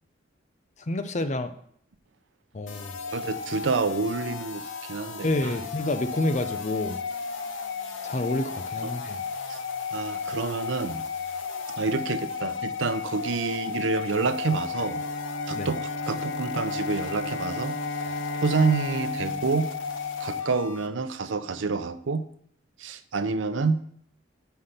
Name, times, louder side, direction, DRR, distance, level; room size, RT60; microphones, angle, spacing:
voice 1, 0.9-1.5 2.5-3.1 5.2-7.0 8.0-9.2 15.5-15.7, left 2 dB, 40° left, 9 dB, 0.6 m, -28 dB
sound 1, 2.7-20.9, left 6 dB, 85° left, 0.8 m, -34 dB
voice 2, 3.1-5.6 9.5-9.6 9.9-11.0 11.8-15.0 15.5-17.8 18.3-19.7 20.2-22.2 22.8-23.8, right 4 dB, 80° right, 10 dB, 0.7 m, -28 dB
Bowed string instrument, 14.7-20.9, right 1 dB, 65° left, 1.4 m, -37 dB
5.8 x 5.7 x 6.6 m, 0.67 s
head